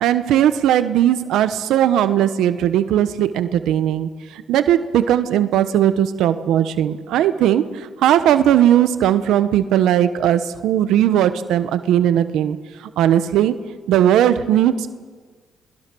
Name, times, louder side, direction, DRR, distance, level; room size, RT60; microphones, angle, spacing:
voice 1, 0.0-13.6 13.9-14.9, right 11 dB, 85° right, 11 dB, 0.9 m, -18 dB
21.5 x 20.0 x 6.2 m, 1.5 s
cardioid pair, 90°, 0 cm